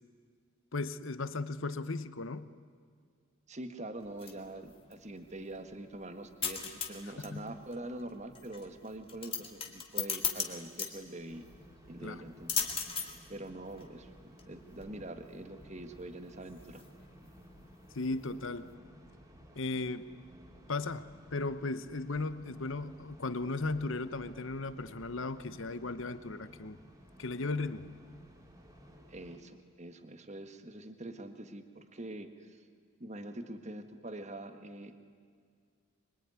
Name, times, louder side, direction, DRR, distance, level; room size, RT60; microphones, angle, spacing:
voice 1, 0.7-2.5 7.2-7.6 12.0-12.2 17.9-18.7 19.6-20.1 20.7-26.8 27.2-27.9, left 3 dB, 60° left, 14 dB, 0.9 m, -36 dB
voice 2, 3.5-11.5 11.9-16.8 29.1-32.6 33.0-35.0, right 1 dB, 30° right, 8 dB, 1.6 m, -44 dB
sound 1, 3.9-18.7, left 7 dB, 25° left, 2.2 m, -40 dB
sound 2, 11.3-29.4, equal, 15° right, 3.0 m, -56 dB
25.5 x 23.0 x 9.6 m, 2.1 s
head